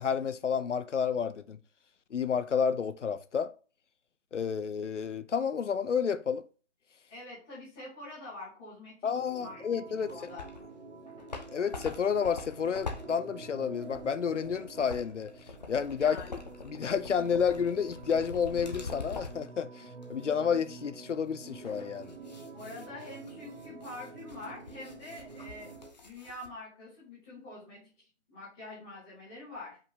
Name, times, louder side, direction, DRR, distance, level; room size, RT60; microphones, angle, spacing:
voice 1, 0.0-1.6 2.1-3.5 4.3-6.4 9.0-10.1 11.5-15.3 15.7-16.2 16.6-22.1, left 7 dB, 80° left, 0.7 m, -30 dB
voice 2, 7.1-10.4 16.0-16.3 17.2-17.3 22.5-25.7 26.0-29.8, left 2 dB, 5° left, 0.9 m, -46 dB
sound 1, 9.1-25.9, right 3 dB, 80° right, 1.5 m, -48 dB
sound 2, 10.1-10.7 11.1-19.5 20.0-20.1 21.6-26.5, left 4 dB, 35° left, 0.9 m, -44 dB
5.5 x 3.5 x 4.9 m
figure-of-eight pair, 165°, 35 cm